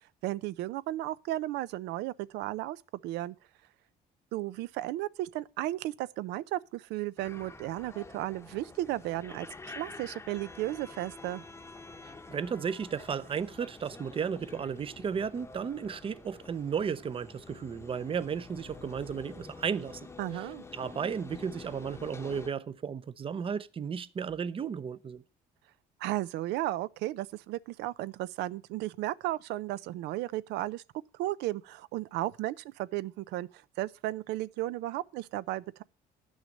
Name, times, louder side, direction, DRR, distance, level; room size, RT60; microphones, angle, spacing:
voice 1, 0.2-3.4 4.3-11.4 20.2-20.6 26.0-30.8 31.2-35.8, right 15 dB, 85° right, 0.5 m, -34 dB
sound 1, 7.2-22.5, left 3 dB, 15° left, 0.8 m, -48 dB
voice 2, 12.3-20.0 20.3-20.5 20.7-25.2, right 7 dB, 35° right, 0.6 m, -34 dB
10.5 x 6.3 x 6.3 m
cardioid pair, 110°, 17 cm